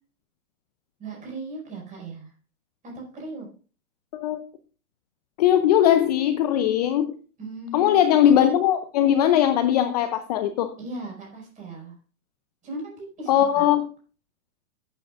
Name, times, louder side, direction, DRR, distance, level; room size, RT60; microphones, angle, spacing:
voice 1, 1.0-2.3 2.9-3.5 7.4-8.2 10.8-11.9 12.6-13.7, right 2 dB, 20° right, -1 dB, 5.2 m, -37 dB
voice 2, 5.4-7.1 7.7-10.7 13.3-13.9, left 10 dB, 30° left, 10 dB, 0.6 m, -20 dB
14.5 x 9.0 x 2.4 m, 0.38 s
hypercardioid pair, 135°, 42 cm